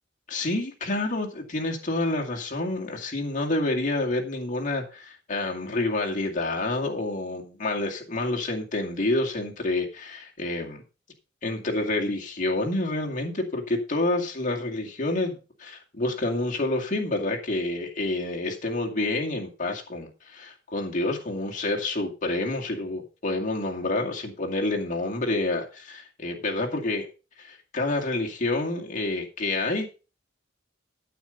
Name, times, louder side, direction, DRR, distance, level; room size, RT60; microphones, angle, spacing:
voice 1, 0.3-10.8 11.4-27.1 27.4-29.9, left 2 dB, 40° left, 1 dB, 2.3 m, -28 dB
9.2 x 8.5 x 5.4 m, 0.33 s
head